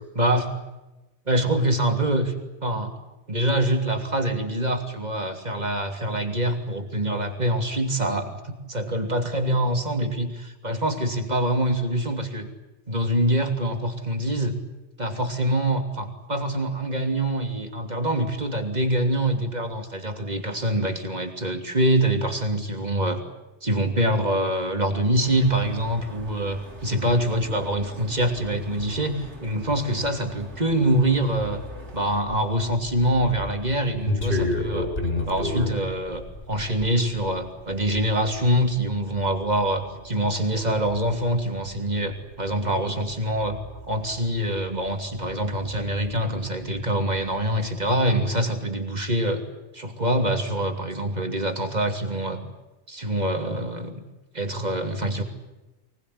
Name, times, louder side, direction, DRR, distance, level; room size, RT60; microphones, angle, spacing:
voice 1, 0.1-0.5 1.3-2.3 2.6-2.9 3.3-12.5 12.9-14.6 15.0-23.2 23.6-31.6 31.9-34.9 35.3-43.6 43.9-49.4 49.7-52.4 52.9-54.0 54.3-55.2, right 1 dB, 40° right, 5 dB, 3.1 m, -25 dB
sound 1, 25.2-32.2, right 1 dB, 85° right, 3.8 m, -43 dB
sound 2, 31.4-46.9 47.2-48.4, left 2 dB, 55° left, 5.5 m, -33 dB
24.5 x 20.0 x 9.9 m, 1.0 s
omnidirectional pair, 1.1 m